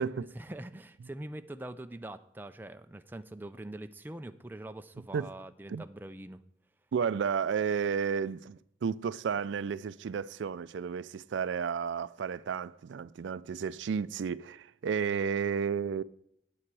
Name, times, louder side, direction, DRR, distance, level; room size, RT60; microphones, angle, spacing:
voice 1, 0.0-6.4, right 1 dB, 10° right, 0.4 m, -44 dB
voice 2, 6.9-16.0, right 6 dB, 80° right, 0.4 m, -32 dB
8.7 x 8.7 x 4.7 m
head